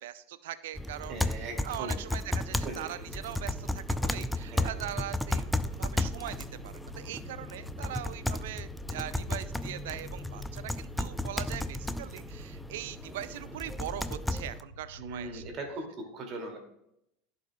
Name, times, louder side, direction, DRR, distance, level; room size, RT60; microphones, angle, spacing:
voice 1, 0.0-15.4, right 12 dB, 65° right, 15 dB, 0.4 m, -41 dB
sound 1, 0.7-14.6, left 1 dB, 5° left, 0.4 m, -34 dB
voice 2, 1.1-1.9 2.6-2.8 4.5-4.8 15.0-16.6, right 2 dB, 40° right, 2 dB, 2.2 m, -39 dB
sound 2, 3.0-15.6, left 2 dB, 90° left, 0.9 m, -49 dB
15.0 x 5.5 x 2.2 m, 0.81 s
figure-of-eight pair, 75°, 0 cm